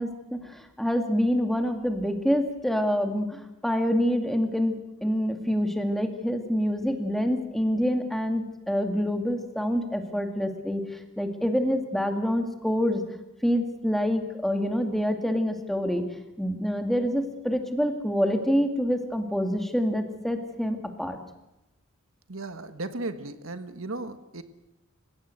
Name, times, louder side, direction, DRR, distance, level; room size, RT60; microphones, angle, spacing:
voice 1, 0.0-13.0 13.4-16.0 16.4-21.2, equal, ahead, 5 dB, 2.3 m, -26 dB
voice 2, 22.3-24.4, right 2 dB, 70° right, 10 dB, 1.4 m, -35 dB
29.5 x 17.0 x 7.9 m, 0.94 s
head